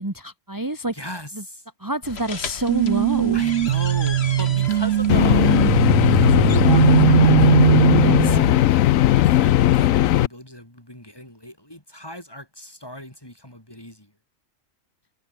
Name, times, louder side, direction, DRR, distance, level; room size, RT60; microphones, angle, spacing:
voice 1, 0.0-1.0 1.3-1.4 1.8-3.4 8.0-8.4, right 1 dB, 15° right, 2.0 m, -27 dB
voice 2, 0.9-1.6 3.3-5.5 6.0-7.6 8.3-14.1, left 1 dB, 15° left, 4.6 m, -37 dB
sound 1, 2.0-7.0, left 5 dB, 50° left, 1.8 m, -35 dB
sound 2, 2.7-8.6, right 13 dB, 65° right, 0.8 m, -19 dB
sound 3, 5.1-10.3, left 13 dB, 80° left, 1.0 m, -17 dB
omnidirectional pair, 1.4 m